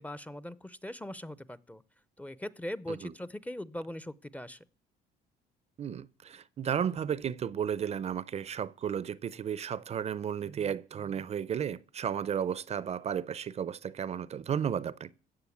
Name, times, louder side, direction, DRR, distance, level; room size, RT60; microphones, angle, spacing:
voice 1, 0.0-1.8 2.2-4.6, left 1 dB, 10° left, 0.6 m, -40 dB
voice 2, 5.8-15.1, right 8 dB, 40° right, 0.5 m, -33 dB
15.5 x 6.4 x 8.5 m
cardioid pair, 110°, 17 cm